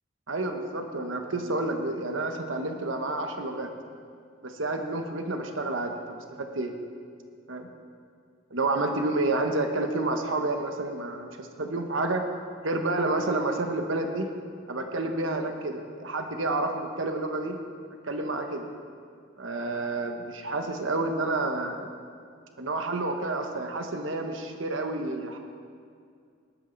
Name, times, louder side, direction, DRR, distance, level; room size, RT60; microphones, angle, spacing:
voice 1, 0.3-3.7 4.4-6.7 7.5-7.7 8.5-12.2 12.6-14.3 14.7-17.6 18.0-18.7 19.4-21.9 22.6-25.4, right 2 dB, 75° right, 5 dB, 1.2 m, -29 dB
20.0 x 11.5 x 4.1 m, 2.3 s
head